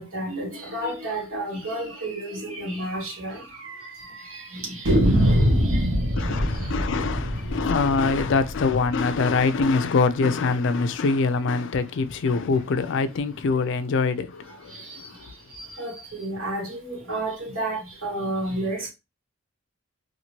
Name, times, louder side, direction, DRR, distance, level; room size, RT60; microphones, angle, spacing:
voice 1, 0.0-3.4 4.5-4.8 15.8-15.9 16.2-18.9, right 1 dB, 90° right, 1.5 m, -30 dB
sound 1, 2.0-2.2 2.5-2.6 2.9-3.0 3.6-4.1 4.9-9.6, equal, 65° right, 1.1 m, -24 dB
voice 2, 6.1-15.3, left 4 dB, 60° left, 0.4 m, -24 dB
2.8 x 2.6 x 2.9 m
head